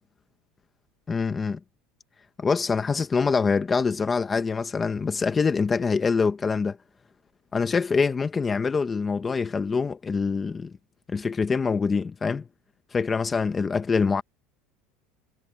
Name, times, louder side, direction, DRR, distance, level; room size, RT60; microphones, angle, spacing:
voice 1, 1.1-1.6 2.4-6.8 7.5-10.7 11.1-12.5 12.9-14.2, left 5 dB, 15° left, 1.0 m, -25 dB
cardioid pair, 165°, 0 cm